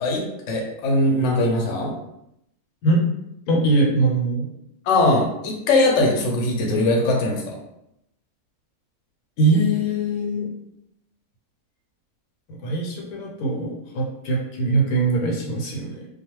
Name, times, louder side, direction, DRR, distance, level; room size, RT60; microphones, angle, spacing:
voice 1, 0.0-1.9 4.8-7.6, left 2 dB, 60° left, 0 dB, 0.8 m, -21 dB
voice 2, 3.5-4.5 9.4-10.5 12.5-16.1, right 2 dB, 90° left, -1 dB, 1.1 m, -22 dB
2.3 x 2.2 x 3.0 m, 0.81 s
omnidirectional pair, 1.6 m